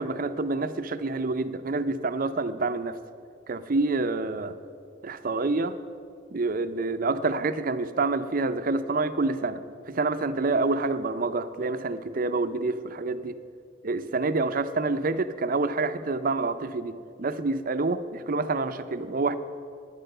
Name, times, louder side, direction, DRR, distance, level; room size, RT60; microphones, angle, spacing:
voice 1, 0.0-3.0 3.5-4.6 5.0-5.8 6.3-9.6 9.9-13.3 13.8-19.4, right 3 dB, 45° right, 10 dB, 0.5 m, -27 dB
10.0 x 9.9 x 6.6 m, 2.3 s
head